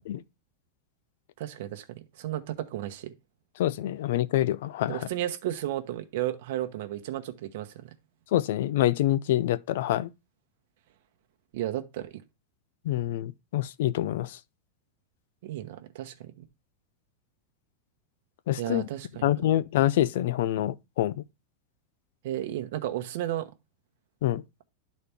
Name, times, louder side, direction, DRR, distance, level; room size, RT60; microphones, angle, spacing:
voice 1, 1.4-1.8 2.2-3.1 4.9-7.7 11.5-12.2 15.4-16.1 18.6-19.3 22.2-23.5, right 13 dB, 55° right, 1.0 m, -33 dB
voice 2, 3.6-5.1 8.3-10.1 12.8-14.4 18.5-18.9 19.2-21.2 24.2-24.4, left 13 dB, 60° left, 0.5 m, -26 dB
11.5 x 4.2 x 3.4 m
supercardioid pair, 170°, 0 cm